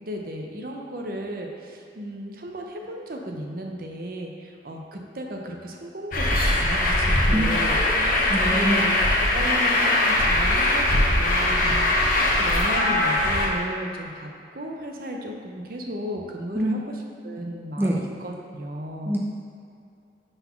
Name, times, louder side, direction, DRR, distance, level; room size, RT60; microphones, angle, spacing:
voice 1, 0.0-16.8 17.2-19.1, right 1 dB, 55° right, 1 dB, 0.7 m, -35 dB
Truck, 6.1-13.5, left 1 dB, 50° left, 0.9 m, -21 dB
voice 2, 8.3-8.8 16.5-16.8 17.8-18.0 19.1-19.2, right 1 dB, 10° right, -3 dB, 0.5 m, -24 dB
5.8 x 4.0 x 5.7 m, 2.5 s
head